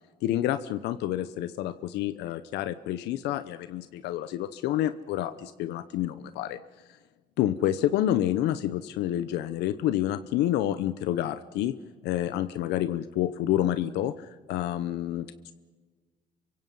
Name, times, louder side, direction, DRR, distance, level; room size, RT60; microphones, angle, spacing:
voice 1, 0.2-6.6 7.4-11.7 12.0-15.5, left 12 dB, 85° left, 13 dB, 0.9 m, -28 dB
27.5 x 24.0 x 5.5 m, 1.4 s
cardioid pair, 110°, 17 cm